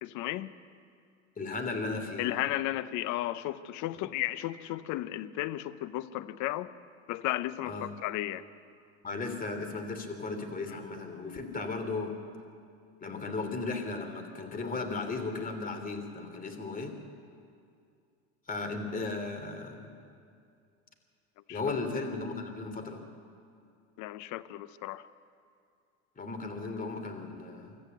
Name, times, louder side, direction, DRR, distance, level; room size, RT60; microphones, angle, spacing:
voice 1, 0.0-0.5 2.2-6.7 7.1-8.4 10.7-10.8 21.5-21.6 24.0-25.0, left 15 dB, 55° left, 14 dB, 0.9 m, -34 dB
voice 2, 1.4-2.3 3.9-4.0 7.6-7.9 9.0-12.1 13.0-16.9 18.5-19.9 21.5-23.0 26.2-27.8, left 3 dB, 20° left, 6 dB, 3.0 m, -36 dB
25.0 x 14.0 x 8.1 m, 2.4 s
supercardioid pair, 100°, 36 cm